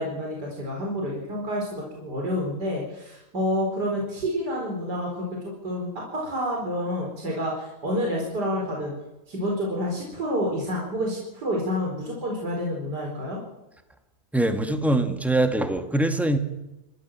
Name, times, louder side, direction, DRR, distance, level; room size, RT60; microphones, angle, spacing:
voice 1, 0.0-8.9 9.3-13.4, equal, 85° right, -1 dB, 5.0 m, -29 dB
voice 2, 14.3-16.4, right 1 dB, ahead, 6 dB, 1.8 m, -23 dB
29.0 x 14.0 x 7.5 m, 1.0 s
omnidirectional pair, 1.7 m